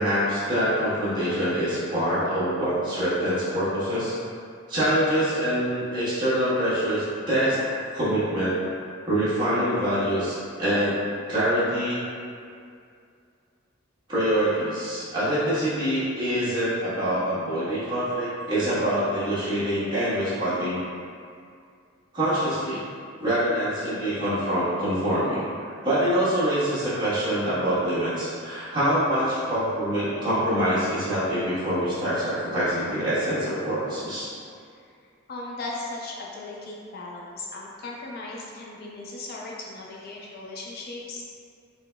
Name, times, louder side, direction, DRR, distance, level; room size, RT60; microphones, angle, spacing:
voice 1, 0.0-4.1 4.7-7.6 7.9-8.5 9.1-11.0 11.3-12.0 14.1-20.8 22.1-22.8 23.2-25.5 25.8-34.3, equal, 20° right, -12 dB, 1.3 m, -25 dB
voice 2, 35.3-41.2, left 2 dB, 50° left, -3 dB, 0.4 m, -37 dB
3.9 x 2.9 x 2.2 m, 2.3 s
head